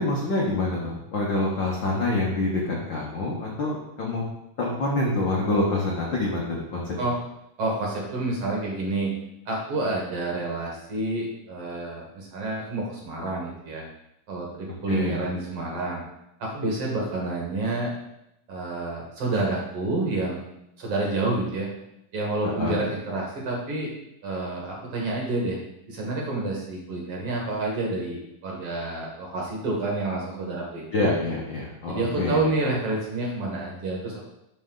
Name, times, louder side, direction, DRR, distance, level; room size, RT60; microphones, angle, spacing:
voice 1, 0.0-4.2 4.6-6.8 14.9-15.2 22.4-22.9 30.9-32.4, left 2 dB, 65° left, -3 dB, 1.2 m, -26 dB
voice 2, 7.6-9.1 9.5-13.8 14.3-16.0 16.4-17.9 18.5-20.4 20.8-21.7 22.1-23.9 24.2-25.6 25.9-30.8 31.9-34.3, right 2 dB, 50° right, -2 dB, 2.2 m, -28 dB
12.5 x 5.2 x 3.9 m, 0.85 s
omnidirectional pair, 4.0 m